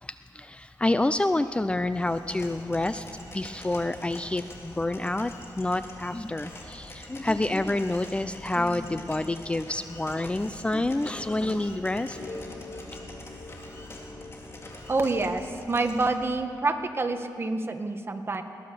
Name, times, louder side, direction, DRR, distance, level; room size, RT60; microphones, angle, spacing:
voice 1, 0.0-12.2, left 2 dB, 15° left, 11 dB, 0.6 m, -28 dB
sound 1, 1.9-16.1, left 1 dB, 40° left, 3.9 m, -45 dB
sound 2, 11.0-16.1, left 2 dB, 55° left, 4.1 m, -44 dB
voice 2, 14.9-18.4, right 3 dB, 35° right, 6 dB, 1.6 m, -27 dB
22.5 x 18.5 x 6.9 m, 2.4 s
cardioid pair, 95°, 7 cm